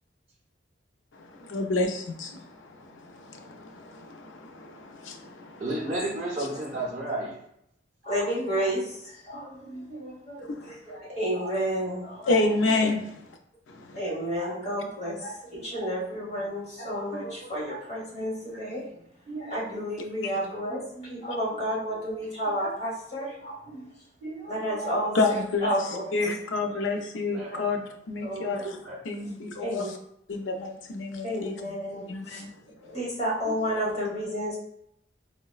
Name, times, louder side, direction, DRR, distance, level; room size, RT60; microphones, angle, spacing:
voice 1, 1.4-2.6 2.9-5.6 10.6-10.7 12.3-13.0 13.7-14.0 20.2-20.3 25.1-25.7 26.1-28.7 29.1-29.9 30.3-31.5 32.1-32.5, left 3 dB, 85° left, 4 dB, 0.5 m, -29 dB
voice 2, 5.6-7.4 12.8-13.0 27.3-27.5 28.8-29.0, right 1 dB, 35° right, -5 dB, 0.5 m, -31 dB
voice 3, 8.0-12.5 13.9-18.9 19.3-23.8 24.2-26.3 26.6-26.8 27.5-27.6 28.2-28.6 29.6-29.9 31.2-32.4 32.8-34.6, equal, 35° left, -6 dB, 1.2 m, -31 dB
3.8 x 2.1 x 2.3 m, 0.76 s
head